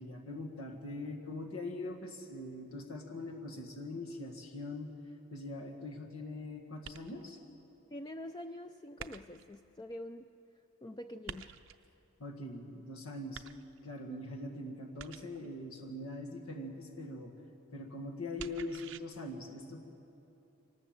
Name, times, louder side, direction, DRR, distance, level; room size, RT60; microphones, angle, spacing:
voice 1, 0.0-4.9 5.3-7.4 12.2-13.4 13.8-17.3 17.7-19.8, left 2 dB, 90° left, 1 dB, 1.9 m, -42 dB
sound 1, 6.8-7.4 9.0-9.6 11.3-11.9 13.3-14.0 15.0-15.5 18.4-19.0, right 7 dB, 60° right, 0.6 m, -48 dB
voice 2, 7.9-10.2 10.8-11.5 14.1-14.2, left 1 dB, 20° left, 7 dB, 0.4 m, -45 dB
25.0 x 19.5 x 7.6 m, 2.9 s
head